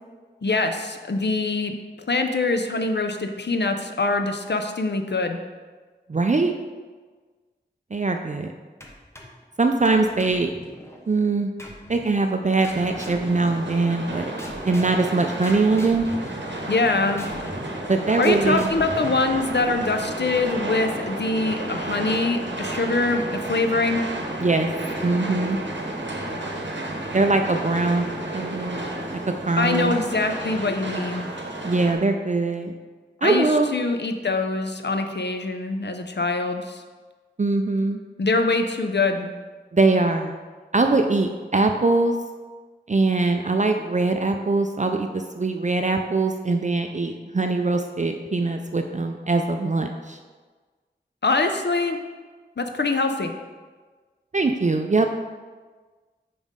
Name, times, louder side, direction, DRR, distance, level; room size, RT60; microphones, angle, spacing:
voice 1, 0.4-1.7 2.1-5.4 16.7-17.3 18.2-24.0 29.6-31.3 33.2-36.8 38.2-39.3 51.2-52.0 52.6-53.3, left 3 dB, 70° left, 6 dB, 0.5 m, -24 dB
voice 2, 6.1-6.5 7.9-8.5 9.6-10.5 11.1-11.5 11.9-14.3 14.7-16.1 17.9-18.7 24.4-24.7 25.0-25.6 27.1-28.1 28.3-28.8 29.5-29.9 31.6-32.7 33.2-33.7 37.4-38.0 39.7-40.4 40.7-42.1 42.9-50.2 54.3-55.1, right 3 dB, 40° right, 5 dB, 0.4 m, -22 dB
sound 1, 8.8-9.4 9.8-11.0 11.6-12.1 12.6-14.1 14.4-20.1, left 1 dB, 15° left, 0.9 m, -41 dB
sound 2, 12.7-32.0, right 1 dB, 80° right, 0.8 m, -32 dB
5.4 x 5.1 x 3.6 m, 1.4 s
wide cardioid pair, 45°, 19 cm